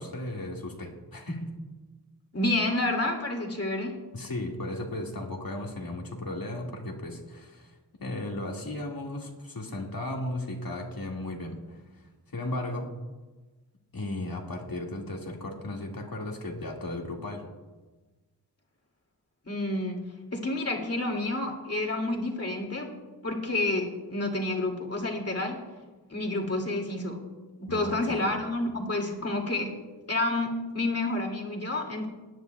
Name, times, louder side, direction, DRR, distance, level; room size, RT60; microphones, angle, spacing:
voice 1, 0.0-1.5 4.1-12.0 12.3-12.9 13.9-17.4 27.7-28.3, left 1 dB, 55° left, 0 dB, 2.1 m, -35 dB
voice 2, 2.3-3.9 19.5-20.0 20.3-22.9 23.2-25.6 26.1-27.2 27.6-29.7 30.1-32.1, left 2 dB, 35° left, 2 dB, 2.5 m, -29 dB
19.5 x 9.8 x 2.3 m, 1.2 s
cardioid pair, 50°, 42 cm